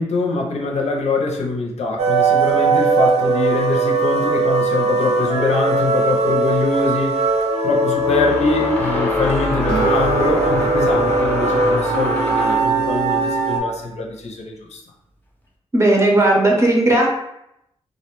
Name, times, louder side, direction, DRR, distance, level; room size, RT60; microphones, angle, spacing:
voice 1, 0.0-7.2 7.6-14.8, left 3 dB, 70° left, 0 dB, 0.5 m, -23 dB
sound 1, 2.0-13.6, right 3 dB, 65° right, 0.4 m, -20 dB
sound 2, 6.0-6.1 7.9-12.8, left 1 dB, 15° left, 0.5 m, -25 dB
Acoustic guitar, 9.7-13.3, equal, 85° right, 0.9 m, -28 dB
voice 2, 15.7-17.2, right 1 dB, 25° right, -1 dB, 0.6 m, -15 dB
2.3 x 2.1 x 2.9 m, 0.82 s
cardioid pair, 80°, 12 cm